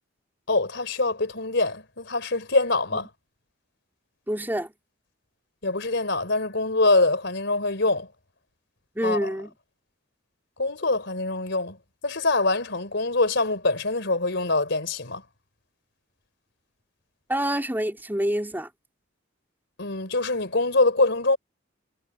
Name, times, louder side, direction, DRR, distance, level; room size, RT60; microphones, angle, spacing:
voice 1, 0.5-3.1 5.6-8.1 9.0-9.3 10.6-11.8 12.0-15.2 19.8-21.4, left 2 dB, 60° left, 4.4 m, -24 dB
voice 2, 4.3-4.7 9.0-9.5 17.3-18.7, right 1 dB, 10° right, 4.0 m, -27 dB
head